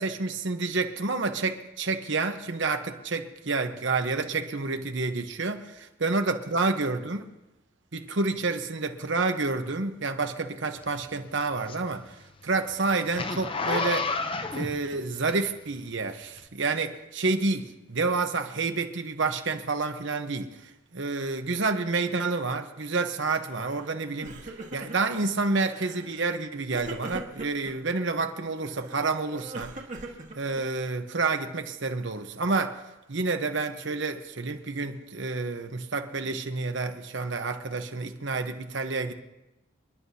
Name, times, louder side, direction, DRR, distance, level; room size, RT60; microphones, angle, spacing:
voice 1, 0.0-7.3 7.9-12.2 12.4-14.1 14.5-29.7 30.3-32.8 33.1-39.1, right 3 dB, 65° right, 1.0 m, -29 dB
Zipper (clothing), 10.8-15.8 16.3-16.4, left 4 dB, 25° left, 0.6 m, -31 dB
Crying sobbing, 23.6-23.9 24.1-25.2 25.7-26.1 26.7-27.7 28.6-30.9, right 2 dB, 40° right, 1.6 m, -41 dB
28.0 x 11.0 x 2.8 m
head